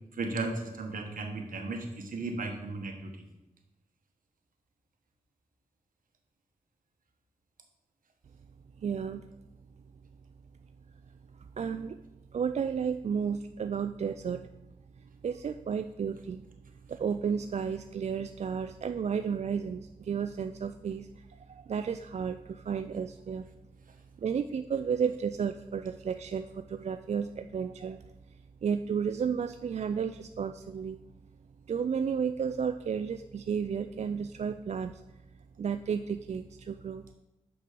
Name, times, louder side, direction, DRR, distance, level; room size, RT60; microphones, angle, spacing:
voice 1, 0.2-3.1, right 3 dB, 70° right, 4 dB, 1.3 m, -35 dB
voice 2, 8.8-9.2 11.6-12.0 12.3-14.5 15.0-16.5 16.9-23.5 24.2-28.0 28.6-31.0 31.7-35.0 35.6-37.1, right 7 dB, 50° right, 9 dB, 0.4 m, -32 dB
6.1 x 6.1 x 5.2 m, 0.98 s
cardioid pair, 55°, 15 cm